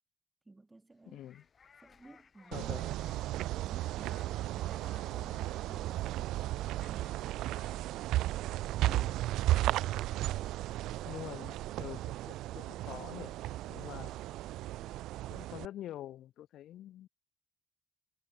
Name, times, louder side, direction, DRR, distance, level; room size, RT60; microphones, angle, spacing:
voice 1, 0.4-1.3 1.8-2.9 3.5-5.4 5.7-6.4, right 2 dB, 20° right, 4.9 m, -57 dB
sound 1, 1.0-7.7, left 6 dB, 45° left, 5.2 m, -61 dB
voice 2, 1.1-1.4 2.5-3.0 5.1-5.5 8.8-9.2 11.0-13.3 13.7-14.1 15.3-17.1, left 12 dB, 80° left, 2.3 m, -46 dB
sound 2, 2.5-15.7, right 15 dB, 90° right, 0.7 m, -35 dB
cardioid pair, 90°, 0 cm